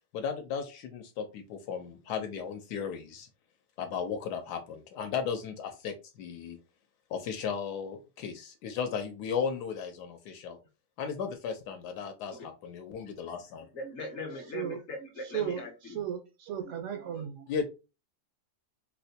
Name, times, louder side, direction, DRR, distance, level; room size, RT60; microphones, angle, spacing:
voice 1, 0.1-3.3 3.8-6.6 7.1-10.6 11.0-13.7 17.5-17.6, left 6 dB, 80° left, 1.1 m, -35 dB
voice 2, 13.7-16.0 17.1-17.3, left 3 dB, 55° left, 0.8 m, -41 dB
voice 3, 14.3-14.8 15.2-17.5, right 9 dB, 70° right, 0.7 m, -36 dB
4.2 x 2.1 x 2.7 m
omnidirectional pair, 1.8 m